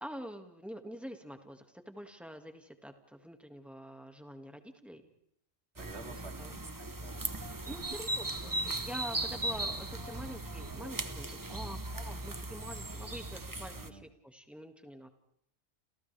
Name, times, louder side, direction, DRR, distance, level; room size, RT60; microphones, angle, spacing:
voice 1, 0.0-5.0 5.9-6.5 7.3-15.1, equal, ahead, 5 dB, 2.0 m, -46 dB
voice 2, 5.7-7.2 7.5-7.8 11.5-11.7 13.7-14.0, right 3 dB, 75° right, 3 dB, 3.2 m, -50 dB
sound 1, 5.8-13.9, right 2 dB, 20° right, 0.9 m, -38 dB
30.0 x 28.5 x 3.5 m, 0.73 s
omnidirectional pair, 1.1 m